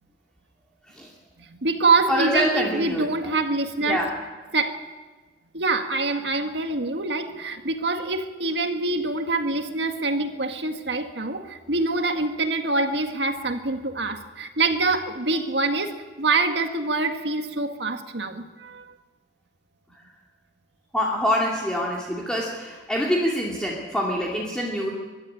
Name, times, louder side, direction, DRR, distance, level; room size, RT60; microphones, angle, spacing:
voice 1, 1.4-4.0 4.5-4.8 5.5-18.9, right 3 dB, 75° right, 6 dB, 1.8 m, -25 dB
voice 2, 2.1-3.0 3.8-4.1 20.9-24.9, equal, 5° left, -3 dB, 2.6 m, -25 dB
23.5 x 12.5 x 10.0 m, 1.3 s
head